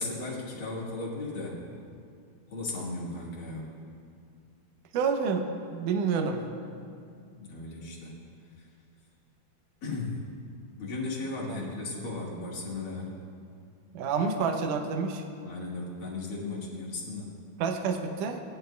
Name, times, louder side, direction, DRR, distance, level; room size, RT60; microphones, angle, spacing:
voice 1, 0.0-1.6 2.5-3.7 7.4-8.1 8.6-8.7 9.8-10.2 10.8-13.1 15.4-17.3, left 3 dB, 45° left, -5 dB, 2.0 m, -36 dB
voice 2, 4.9-6.4 11.5-11.7 13.9-15.2 17.6-18.4, right 5 dB, 75° right, 5 dB, 2.0 m, -28 dB
19.0 x 10.5 x 2.2 m, 2.3 s
omnidirectional pair, 4.3 m